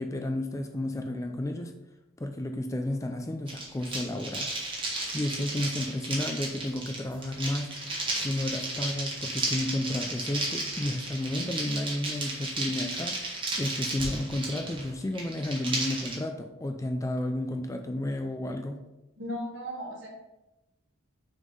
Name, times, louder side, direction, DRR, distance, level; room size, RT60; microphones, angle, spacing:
voice 1, 0.0-1.7 2.2-4.5 4.8-7.9 8.2-18.8, left 1 dB, 15° left, 5 dB, 0.4 m, -32 dB
sound 1, 3.5-16.2, right 2 dB, 25° right, 1.4 m, -34 dB
voice 2, 19.2-20.1, equal, 60° right, 0 dB, 1.6 m, -36 dB
6.2 x 3.7 x 5.4 m, 0.96 s
head